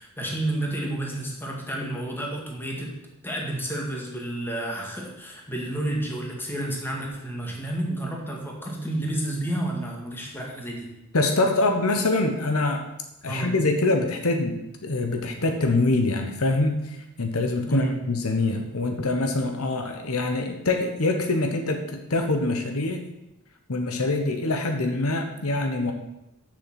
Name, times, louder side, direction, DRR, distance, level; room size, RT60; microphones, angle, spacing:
voice 1, 0.0-2.9 3.2-10.9 13.3-13.5 17.7-18.0, right 1 dB, 10° left, -1 dB, 2.0 m, -30 dB
voice 2, 11.1-12.8 13.2-14.6 14.8-23.1 23.7-25.9, left 2 dB, 70° left, 5 dB, 1.1 m, -24 dB
7.0 x 6.5 x 7.5 m, 0.91 s
head